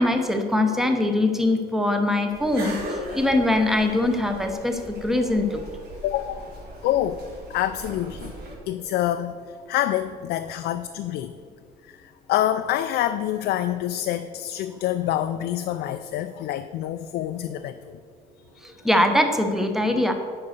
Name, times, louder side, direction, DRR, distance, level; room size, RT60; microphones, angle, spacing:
voice 1, 0.0-5.6 18.6-20.1, left 1 dB, ahead, 5 dB, 0.8 m, -22 dB
sound 1, 2.3-8.6, right 1 dB, 75° right, 2.1 m, -38 dB
voice 2, 6.0-6.5 6.8-7.2 7.5-8.4 8.7-11.3 11.8-18.0, left 12 dB, 75° left, 8 dB, 0.4 m, -27 dB
9.8 x 4.0 x 6.6 m, 2.1 s
cardioid pair, 110°, 17 cm